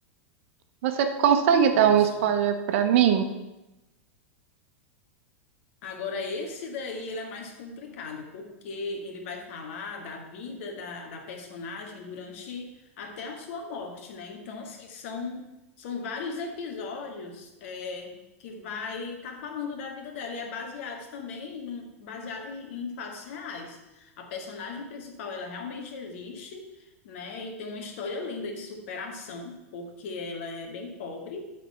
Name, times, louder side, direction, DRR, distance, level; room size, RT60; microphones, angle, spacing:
voice 1, 0.8-3.3, right 8 dB, 60° right, 7 dB, 0.9 m, -21 dB
voice 2, 1.7-2.2 5.8-15.5 15.8-31.5, left 4 dB, 60° left, 3 dB, 1.6 m, -37 dB
12.0 x 4.3 x 4.4 m, 0.98 s
hypercardioid pair, 95°, 7 cm